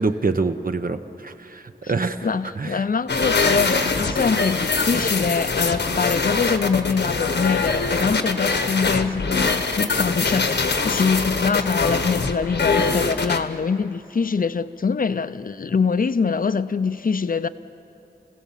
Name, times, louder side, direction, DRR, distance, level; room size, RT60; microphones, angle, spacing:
voice 1, 0.0-2.3 2.6-2.8, right 3 dB, 55° right, 1.0 m, -25 dB
voice 2, 2.2-17.5, left 5 dB, 55° left, 0.6 m, -24 dB
sound 1, 3.1-13.4, left 4 dB, 80° left, 1.3 m, -23 dB
29.5 x 16.5 x 7.4 m
wide cardioid pair, 80°, 18 cm